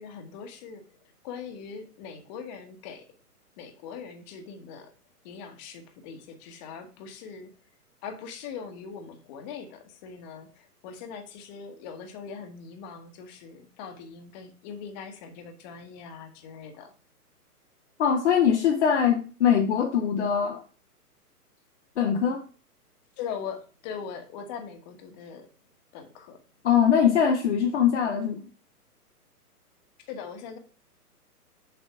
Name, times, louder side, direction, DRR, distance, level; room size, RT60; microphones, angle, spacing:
voice 1, 0.0-3.2 3.6-4.9 5.2-7.5 8.0-16.9 23.2-25.5 25.9-26.4 30.1-30.6, left 6 dB, 30° left, 1.4 m, -41 dB
voice 2, 18.0-20.6 22.0-22.4 26.6-28.4, left 8 dB, 45° left, 1.0 m, -22 dB
6.9 x 4.1 x 6.1 m
figure-of-eight pair, 120°, 47 cm